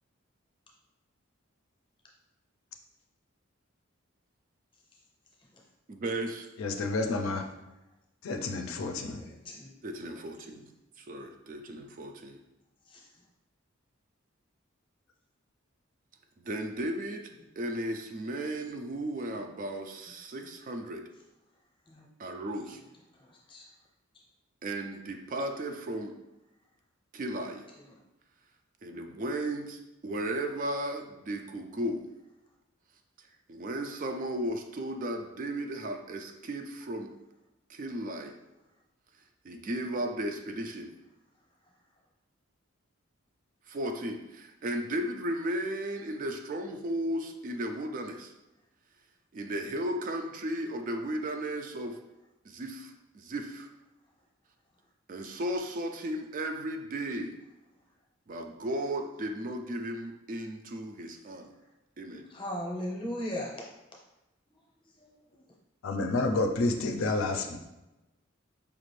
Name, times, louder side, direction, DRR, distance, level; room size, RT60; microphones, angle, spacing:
voice 1, 5.9-6.5 9.8-10.7 11.0-12.4 16.4-17.3 17.6-21.0 22.2-22.8 24.6-26.1 27.1-27.7 28.8-32.1 33.2-37.1 37.7-38.3 39.4-40.9 43.7-48.3 49.3-52.0 52.4-53.7 55.1-57.4 58.3-61.5 62.0-62.3, right 1 dB, 40° right, 4 dB, 0.3 m, -35 dB
voice 2, 6.6-7.4 8.2-9.2 65.8-67.6, left 2 dB, 75° left, 4 dB, 0.4 m, -29 dB
voice 3, 9.2-9.7 12.9-13.0 21.9-22.0 23.5-23.6 62.3-63.6 65.0-65.1, equal, 25° left, -2 dB, 0.7 m, -36 dB
5.0 x 2.5 x 3.1 m, 0.99 s
head